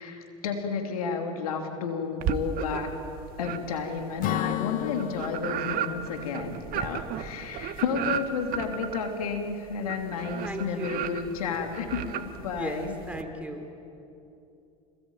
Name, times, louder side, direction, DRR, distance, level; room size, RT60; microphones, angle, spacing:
voice 1, 0.0-3.0 3.4-12.9, left 5 dB, 85° left, 4 dB, 3.2 m, -32 dB
sound 1, 2.2-3.0 3.4-13.2, right 9 dB, 55° right, 1.7 m, -34 dB
Acoustic guitar / Strum, 4.2-7.8, left 14 dB, 50° left, 0.7 m, -35 dB
voice 2, 10.4-11.0 12.4-13.6, right 1 dB, 5° right, 3 dB, 4.6 m, -37 dB
27.5 x 20.5 x 9.3 m, 2.8 s
hypercardioid pair, 85°, 18 cm